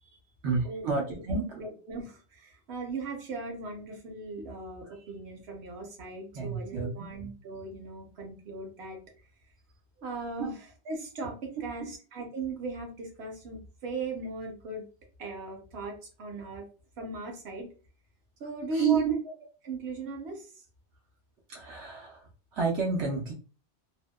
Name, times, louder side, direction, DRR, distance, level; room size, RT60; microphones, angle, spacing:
voice 1, 0.4-1.6 6.3-6.9 10.4-10.5 18.7-19.1 21.5-23.3, right 5 dB, 90° right, -1 dB, 1.0 m, -29 dB
voice 2, 1.6-9.0 10.0-10.6 10.9-14.9 15.2-16.7 17.0-17.7 18.4-19.2 19.6-20.6, right 2 dB, 70° right, 1 dB, 1.0 m, -38 dB
2.6 x 2.1 x 2.2 m, 0.37 s
omnidirectional pair, 1.1 m